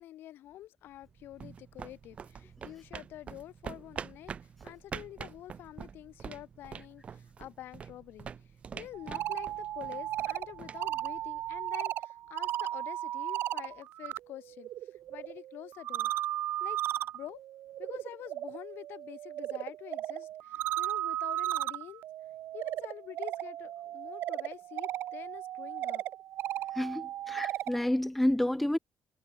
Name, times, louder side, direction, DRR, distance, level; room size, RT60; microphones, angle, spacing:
voice 1, 0.0-4.3 4.6-8.3 8.7-14.7 15.1-16.1 16.6-16.8 17.1-17.4 17.8-22.0 22.5-26.0, left 13 dB, 90° left, 3.1 m, -47 dB
sound 1, 0.9-11.7, right 7 dB, 35° right, 1.3 m, -46 dB
sound 2, 8.9-14.2 14.5-27.8, right 13 dB, 80° right, 1.9 m, -36 dB
voice 2, 26.7-28.8, left 1 dB, 5° left, 0.3 m, -29 dB
cardioid pair, 170°, 4 cm